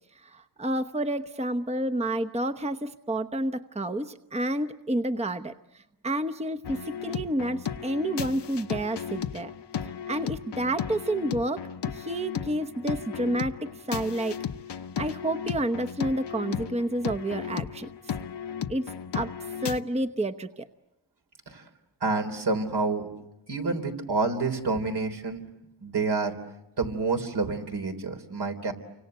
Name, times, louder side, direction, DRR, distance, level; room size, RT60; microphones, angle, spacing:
voice 1, 0.1-9.5 10.1-14.4 14.7-18.1 18.7-19.3 19.6-20.7, right 1 dB, 15° right, 9 dB, 0.9 m, -30 dB
sound 1, 6.6-19.8, left 8 dB, 70° left, 1.1 m, -35 dB
voice 2, 22.0-23.1 23.5-25.4 25.8-26.4 26.8-28.7, right 3 dB, 65° right, 5 dB, 3.6 m, -28 dB
29.5 x 25.5 x 8.0 m, 0.90 s
cardioid pair, 70°, 42 cm